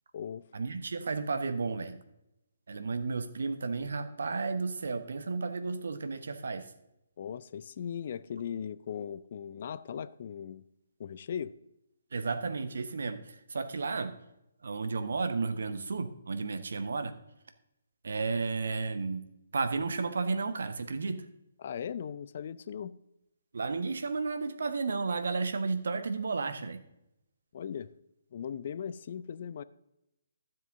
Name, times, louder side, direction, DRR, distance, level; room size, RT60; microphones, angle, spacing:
voice 1, 0.5-2.0 2.7-6.7 12.1-14.1 14.6-17.1 18.0-19.2 19.5-21.2 23.5-26.8, right 4 dB, 60° right, 10 dB, 1.0 m, -33 dB
voice 2, 7.2-10.6 11.0-11.5 21.6-23.0 27.5-27.9 28.3-29.6, left 8 dB, 45° left, 17 dB, 0.4 m, -38 dB
12.0 x 7.6 x 3.7 m, 0.85 s
figure-of-eight pair, 140°, 0 cm